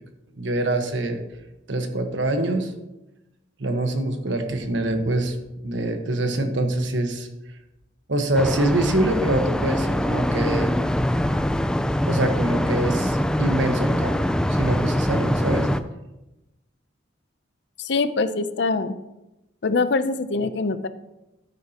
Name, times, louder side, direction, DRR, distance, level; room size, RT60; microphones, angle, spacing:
voice 1, 0.4-1.2 1.7-2.7 3.6-5.3 5.6-7.3 8.1-10.7 12.1-14.2 14.5-15.7, right 1 dB, 70° right, 5 dB, 1.3 m, -24 dB
sound 1, 8.3-15.8, equal, 5° left, 0.3 m, -23 dB
voice 2, 17.8-18.9 19.6-20.9, left 3 dB, 60° left, 12 dB, 0.5 m, -23 dB
13.0 x 9.5 x 2.9 m, 0.98 s
head